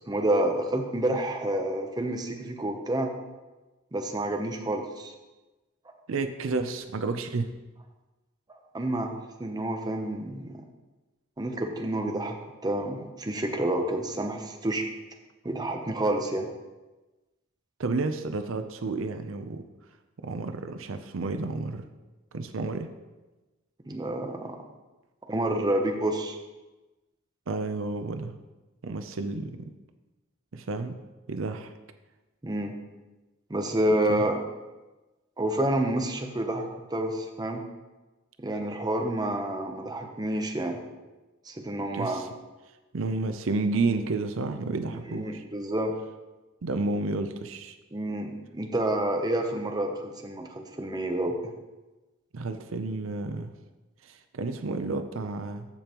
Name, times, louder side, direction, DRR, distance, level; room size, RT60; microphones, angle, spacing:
voice 1, 0.1-3.1 3.9-5.1 8.5-9.1 9.4-10.6 11.4-12.4 12.6-14.8 15.4-16.5 23.8-24.6 25.3-26.4 32.4-32.7 33.5-34.4 35.4-37.6 38.4-40.8 41.5-42.2 45.1-45.9 47.9-51.4, right 1 dB, 20° right, 3 dB, 0.8 m, -29 dB
voice 2, 6.1-7.5 17.8-19.6 20.2-21.8 22.3-22.9 27.5-28.3 28.8-29.7 30.5-31.0 31.3-31.7 34.1-34.3 41.9-42.3 42.9-45.4 46.6-47.8 52.3-53.5 54.0-55.7, right 3 dB, 85° right, 8 dB, 0.6 m, -31 dB
14.5 x 5.2 x 3.0 m, 1.1 s
head